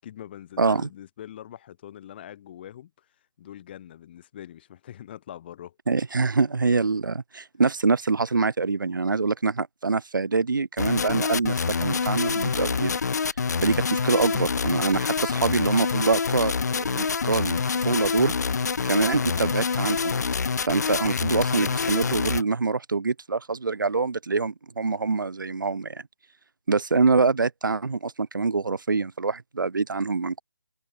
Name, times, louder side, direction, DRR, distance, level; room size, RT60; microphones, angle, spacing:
voice 1, 0.0-3.0 3.4-5.7, left 11 dB, 25° left, 6.9 m, -43 dB
voice 2, 0.6-0.9 5.9-13.0 13.6-18.4 18.8-20.2 20.7-26.0 26.7-30.4, right 4 dB, 65° right, 2.4 m, -25 dB
sound 1, 10.8-22.4, left 5 dB, 50° left, 1.0 m, -26 dB
figure-of-eight pair, 160°, 12 cm